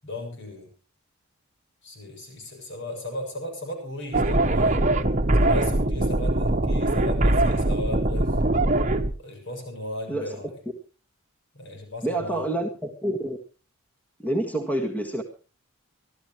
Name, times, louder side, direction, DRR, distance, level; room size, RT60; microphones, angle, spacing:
voice 1, 0.0-0.7 1.8-4.9 5.3-8.4 9.2-10.5 11.5-12.4, left 1 dB, 55° left, 3 dB, 7.5 m, -36 dB
sound 1, 4.1-9.1, right 1 dB, 35° right, 1.2 m, -22 dB
voice 2, 10.1-10.4 12.0-13.4 14.2-15.2, right 1 dB, 10° left, 4 dB, 1.7 m, -28 dB
25.0 x 13.5 x 3.1 m, 0.34 s
head